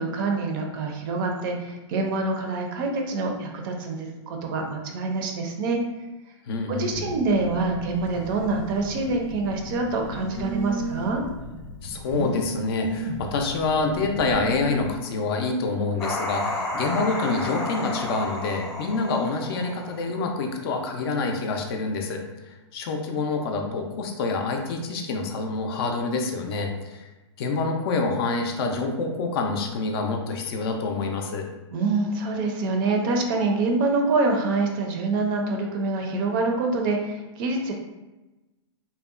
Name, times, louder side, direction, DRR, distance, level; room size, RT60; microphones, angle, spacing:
voice 1, 0.0-5.8 6.7-11.2 31.7-37.7, right 3 dB, 45° right, 2 dB, 0.4 m, -26 dB
voice 2, 6.5-7.0 11.8-22.2 22.7-27.1 27.4-31.5, left 3 dB, 55° left, 3 dB, 0.4 m, -27 dB
Telephone, 6.9-15.0, right 1 dB, 90° right, 0.6 m, -35 dB
sound 1, 16.0-20.3, left 1 dB, 20° left, 0.7 m, -31 dB
2.7 x 2.1 x 2.4 m, 1.1 s
hypercardioid pair, 135°, 16 cm